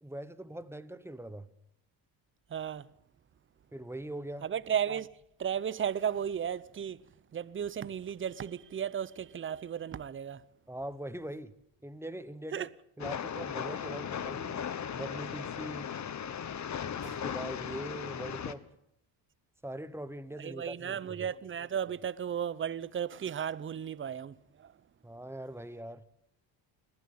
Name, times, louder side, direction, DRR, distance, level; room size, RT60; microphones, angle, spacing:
voice 1, 0.0-1.5 3.7-4.5 10.7-11.5 11.8-12.7 13.0-14.6 15.0-16.0 17.0-18.6 19.6-21.3 25.0-26.1, right 1 dB, 5° right, 1.1 m, -42 dB
voice 2, 2.5-2.9 4.4-5.1 5.4-7.0 7.3-10.4 12.5-12.7 17.0-17.2 20.4-24.7, right 8 dB, 25° right, 0.7 m, -35 dB
Train, 13.0-18.5, left 8 dB, 40° left, 1.3 m, -37 dB
21.0 x 15.5 x 8.8 m
cardioid pair, 95°, 46 cm